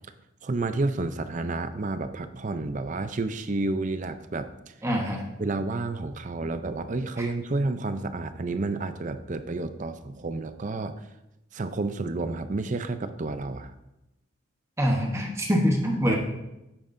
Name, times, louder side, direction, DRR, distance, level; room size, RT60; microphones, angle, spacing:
voice 1, 0.4-4.5 5.4-10.9 11.5-13.7, right 2 dB, 40° right, 10 dB, 0.5 m, -30 dB
voice 2, 4.8-5.2 7.2-7.3 14.8-16.2, equal, 15° right, 0 dB, 0.9 m, -24 dB
9.3 x 9.0 x 2.6 m, 0.94 s
head